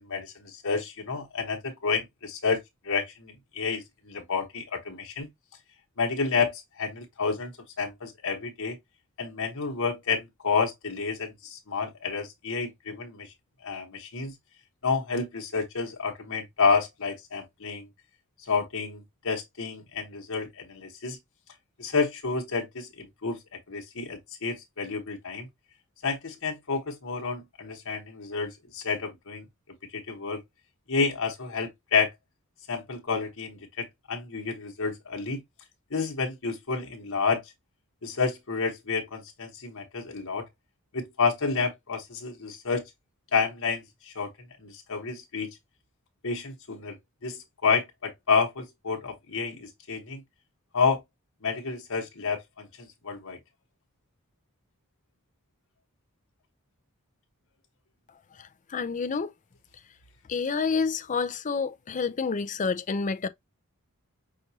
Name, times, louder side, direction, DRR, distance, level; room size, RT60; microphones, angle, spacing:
voice 1, 0.0-2.6 2.8-5.3 6.0-8.8 9.2-13.3 13.6-14.3 14.8-17.9 18.5-21.2 21.8-23.4 23.7-25.5 26.0-29.4 29.9-30.4 30.9-32.1 32.7-35.4 35.9-37.4 38.0-40.4 40.9-42.9 43.3-44.3 44.6-45.5 46.2-47.0 47.2-50.2 50.7-51.0 51.4-53.4, left 5 dB, 65° left, 1.2 m, -30 dB
voice 2, 58.7-59.3 60.3-63.3, left 5 dB, 35° left, 0.5 m, -28 dB
5.9 x 2.6 x 2.8 m
head